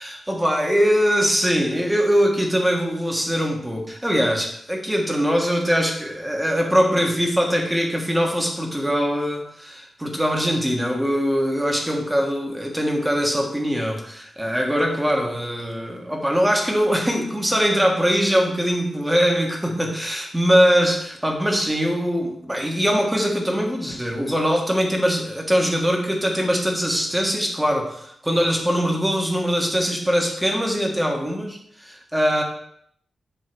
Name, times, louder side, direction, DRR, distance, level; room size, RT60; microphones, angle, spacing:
voice 1, 0.0-32.4, equal, 10° right, 1 dB, 1.4 m, -22 dB
8.0 x 3.8 x 6.1 m, 0.68 s
wide cardioid pair, 130°, 0 cm